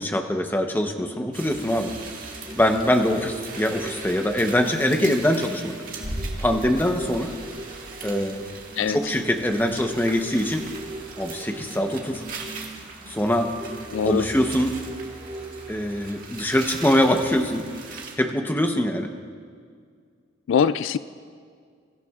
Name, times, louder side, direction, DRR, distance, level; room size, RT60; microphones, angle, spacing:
voice 1, 0.0-1.9 2.5-5.7 6.4-7.4 8.0-8.4 8.9-10.6 11.2-12.2 13.1-13.5 14.0-14.8 15.7-17.7 18.2-19.1, left 1 dB, 10° left, 4 dB, 0.8 m, -23 dB
sound 1, 0.7-16.8 17.2-17.3, right 1 dB, 20° right, 4.0 m, -41 dB
sound 2, 1.3-18.1, right 4 dB, 50° right, 1.6 m, -40 dB
sound 3, 6.0-11.7 12.0-12.1, equal, 35° left, 1.9 m, -39 dB
voice 2, 13.9-14.3 20.5-21.0, left 7 dB, 80° left, 15 dB, 0.3 m, -22 dB
22.5 x 14.0 x 2.4 m, 2.1 s
head